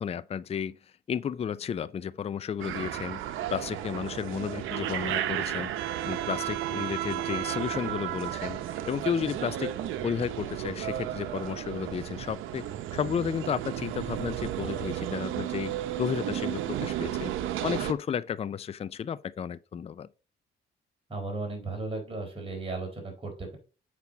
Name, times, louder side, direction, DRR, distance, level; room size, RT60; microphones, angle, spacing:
voice 1, 0.0-0.8 1.1-3.2 3.5-5.7 6.0-8.6 8.9-9.7 10.0-12.7 12.9-15.7 16.0-17.3 17.6-20.1, left 8 dB, 30° left, 0.4 m, -32 dB
sound 1, 2.6-17.9, right 12 dB, 90° right, 0.8 m, -33 dB
voice 2, 21.1-23.6, right 3 dB, 30° right, 4.0 m, -35 dB
7.4 x 5.9 x 4.0 m
cardioid pair, 90°, 20 cm